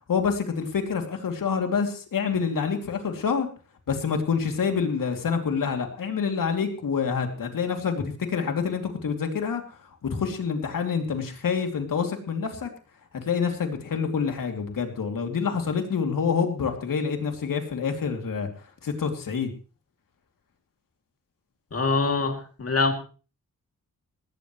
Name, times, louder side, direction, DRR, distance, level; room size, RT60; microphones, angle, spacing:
voice 1, 0.1-3.5 3.9-12.7 13.1-18.5 18.8-19.5, left 6 dB, 75° left, 4 dB, 2.8 m, -27 dB
voice 2, 21.7-22.9, left 4 dB, 45° left, 4 dB, 2.7 m, -24 dB
18.5 x 16.5 x 3.2 m, 0.36 s
wide cardioid pair, 155°, 33 cm